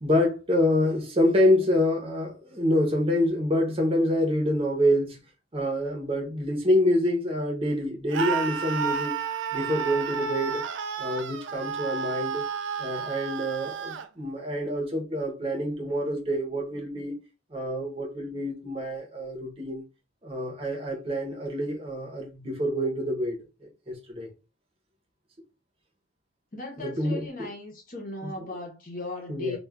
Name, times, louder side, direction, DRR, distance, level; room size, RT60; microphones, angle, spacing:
voice 1, 0.0-5.2 5.5-9.2 9.5-10.6 11.0-12.4 12.8-17.2 17.5-19.8 20.2-24.3 26.8-27.5 28.2-28.5 29.3-29.6, left 1 dB, 30° right, 0.7 m, -27 dB
Screaming, 8.1-14.1, right 6 dB, 65° right, 0.3 m, -31 dB
voice 2, 26.5-29.6, left 2 dB, 45° left, 0.8 m, -38 dB
2.3 x 2.3 x 3.3 m
head